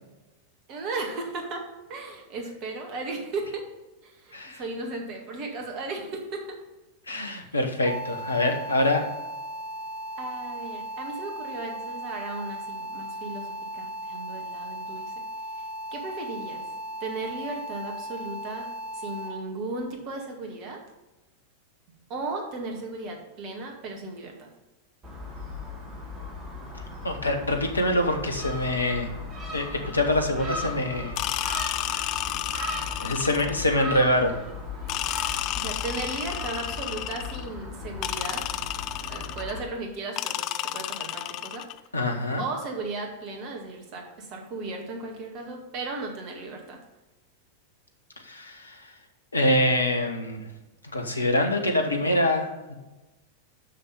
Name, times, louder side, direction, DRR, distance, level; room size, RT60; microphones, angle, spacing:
voice 1, 0.7-1.6 1.9-3.7 4.0-6.6 10.2-15.1 15.9-16.7 17.0-18.7 18.9-20.8 22.1-24.5 35.5-38.5 39.1-41.7 42.4-46.8, right 3 dB, 40° right, 2 dB, 2.0 m, -35 dB
voice 2, 7.1-9.0 27.0-29.1 29.5-31.1 33.0-34.3 41.9-42.4 48.2-48.9 49.3-50.5 50.9-52.7, left 1 dB, 80° left, 4 dB, 1.2 m, -25 dB
sound 1, 7.9-19.3, right 1 dB, 60° right, 1.9 m, -37 dB
Gull seagull, 25.0-39.6, left 2 dB, 25° right, 2.5 m, -37 dB
sound 2, 31.2-33.7 34.9-37.5 38.0-39.6 40.2-41.8, left 14 dB, 40° left, 0.4 m, -32 dB
6.5 x 6.2 x 5.4 m, 1.1 s
figure-of-eight pair, 90°, 0 cm